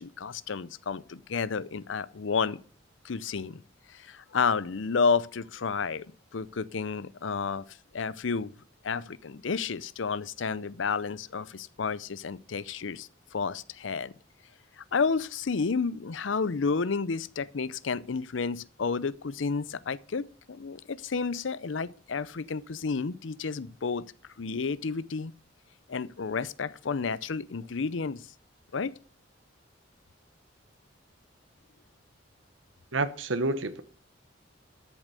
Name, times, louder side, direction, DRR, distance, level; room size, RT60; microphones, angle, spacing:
voice 1, 0.0-2.6 3.0-3.6 3.9-6.1 6.3-7.6 7.9-8.5 8.8-14.1 14.8-24.0 24.4-25.3 25.9-28.2 28.7-28.9, left 5 dB, 75° left, 0.6 m, -31 dB
voice 2, 32.9-33.8, right 2 dB, 90° right, 1.1 m, -28 dB
13.0 x 7.2 x 6.7 m
head